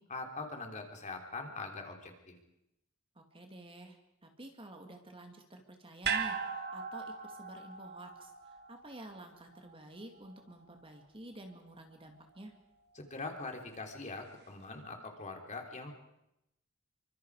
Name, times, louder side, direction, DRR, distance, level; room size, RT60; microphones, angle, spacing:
voice 1, 0.1-2.4 13.0-15.9, left 3 dB, 35° left, 3 dB, 3.5 m, -42 dB
voice 2, 3.2-12.5, right 1 dB, 25° right, 4 dB, 2.4 m, -50 dB
sound 1, 6.0-10.4 10.7-10.8, right 6 dB, 50° right, 2.0 m, -39 dB
27.5 x 24.5 x 4.9 m, 0.82 s
head